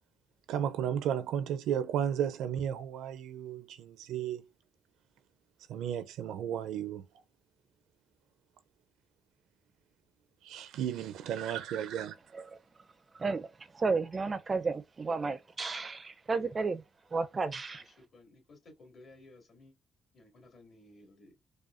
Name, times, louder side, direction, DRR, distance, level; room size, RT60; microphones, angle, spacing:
voice 1, 0.5-4.5 5.7-7.0 10.4-12.2, right 9 dB, 85° right, 0.5 m, -34 dB
voice 2, 13.1-13.5 13.7-16.8 17.1-17.8, right 4 dB, 35° right, 0.4 m, -32 dB
voice 3, 17.8-19.7 20.1-21.5, left 2 dB, 50° left, 2.2 m, -57 dB
4.9 x 2.3 x 2.5 m
cardioid pair, 90°, 0 cm